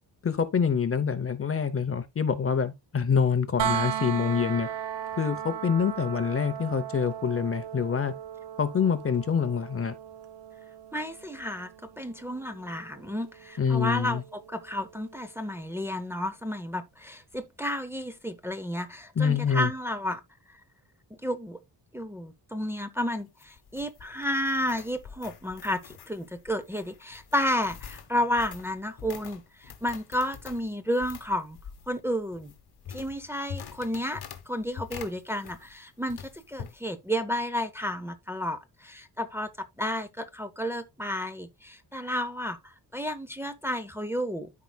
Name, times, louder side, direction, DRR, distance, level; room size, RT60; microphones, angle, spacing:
voice 1, 0.2-4.7 5.2-8.1 8.6-9.9 13.6-14.2 19.2-19.7, left 6 dB, 35° left, 0.6 m, -26 dB
sound 1, 3.6-15.4 17.3-17.4, right 10 dB, 85° right, 0.8 m, -37 dB
voice 2, 10.9-11.7 12.0-20.2 20.5-20.6 21.2-21.6 21.9-31.6 31.9-32.5 32.9-39.5 39.8-44.5, equal, 5° right, 0.6 m, -32 dB
sound 2, 23.2-35.8 36.1-36.8, left 7 dB, 65° left, 1.1 m, -45 dB
13.5 x 4.7 x 2.2 m
wide cardioid pair, 180°, 41 cm